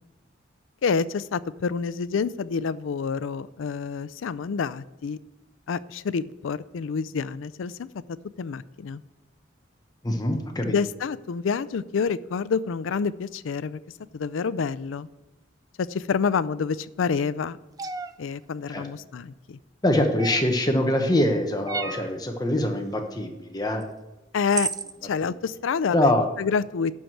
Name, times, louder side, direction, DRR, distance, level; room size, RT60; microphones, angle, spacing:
voice 1, 0.8-5.2 5.7-7.9 8.4-9.0 10.6-13.8 14.1-15.1 15.8-17.6 18.2-19.6 24.3-24.7 25.0-26.1 26.4-26.9, left 5 dB, 85° left, 17 dB, 0.4 m, -28 dB
voice 2, 10.0-10.7 18.7-18.9 19.8-23.8 25.2-25.3 25.9-26.2, left 1 dB, 20° left, 4 dB, 0.9 m, -24 dB
sound 1, 17.8-18.1 20.2-20.6 21.7-22.1 23.8-23.9 24.5-24.9, right 5 dB, 20° right, 0.4 m, -31 dB
11.5 x 4.6 x 7.7 m, 1.1 s
head